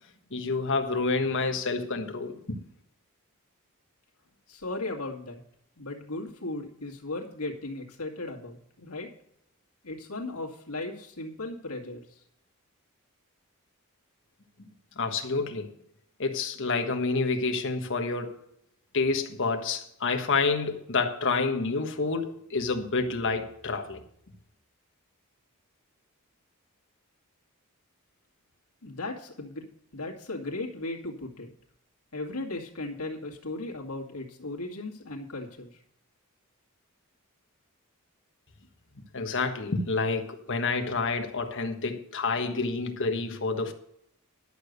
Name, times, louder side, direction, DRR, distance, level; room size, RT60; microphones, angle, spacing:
voice 1, 0.3-2.6 15.0-15.7 16.2-18.3 18.9-24.0 39.1-43.7, left 4 dB, 60° left, 1.4 m, -28 dB
voice 2, 4.5-5.4 5.8-9.1 9.8-12.2 28.8-29.7 29.9-31.5 32.1-35.7, left 2 dB, 80° left, 2.2 m, -36 dB
11.5 x 6.7 x 6.7 m
head